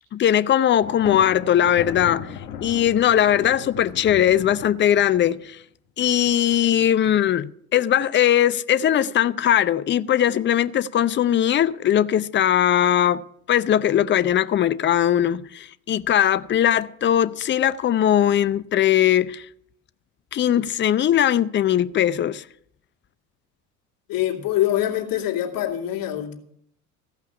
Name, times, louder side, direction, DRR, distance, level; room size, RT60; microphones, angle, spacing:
voice 1, 0.1-5.6 6.0-19.5 20.3-22.4, left 10 dB, 25° left, 0.6 m, -20 dB
Thunder, 0.8-5.4, left 8 dB, 75° left, 1.8 m, -37 dB
voice 2, 24.1-26.3, left 13 dB, 45° left, 2.6 m, -24 dB
15.5 x 5.8 x 9.4 m
hypercardioid pair, 70°, 46 cm